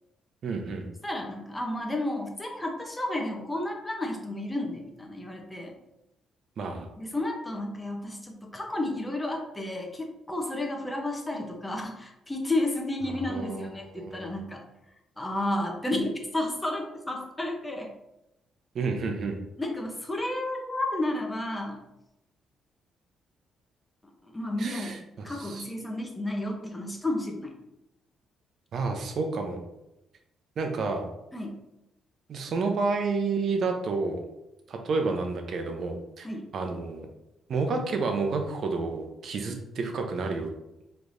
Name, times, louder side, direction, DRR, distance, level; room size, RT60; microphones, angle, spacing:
voice 1, 0.4-0.9 6.6-6.9 13.3-14.4 18.7-19.4 24.6-25.7 28.7-29.6 30.6-31.1 32.3-34.2 34.7-36.3 36.5-37.1 37.5-40.5, right 4 dB, 60° right, 4 dB, 0.7 m, -30 dB
voice 2, 1.0-5.7 7.0-14.6 15.2-17.9 19.6-21.8 24.2-25.0 25.2-27.5 31.3-31.6 36.2-36.5, left 1 dB, 15° left, 2 dB, 0.8 m, -32 dB
4.6 x 3.3 x 2.6 m, 0.89 s
cardioid pair, 90°, 0 cm